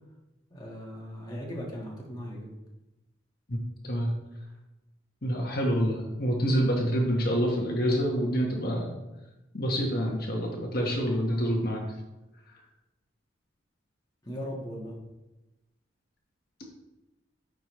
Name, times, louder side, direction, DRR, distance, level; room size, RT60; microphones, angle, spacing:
voice 1, 0.5-2.5 14.2-15.0, equal, 20° left, -3 dB, 1.5 m, -38 dB
voice 2, 5.2-8.9 9.5-11.8, equal, 50° left, -1 dB, 1.3 m, -27 dB
9.7 x 5.2 x 3.1 m, 1.0 s
head